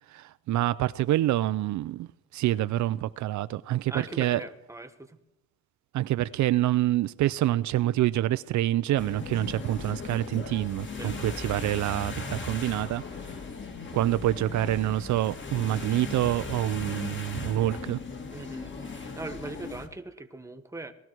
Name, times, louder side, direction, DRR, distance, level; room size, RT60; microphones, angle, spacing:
voice 1, 0.1-2.1 2.3-4.4 5.9-13.0 13.9-18.0, right 14 dB, 70° right, 0.5 m, -27 dB
voice 2, 3.9-5.2 10.9-11.2 18.3-20.9, right 2 dB, 10° right, 1.4 m, -40 dB
sound 1, 9.0-19.9, left 4 dB, 40° left, 2.4 m, -38 dB
19.0 x 13.0 x 4.6 m
cardioid pair, 90°, 30 cm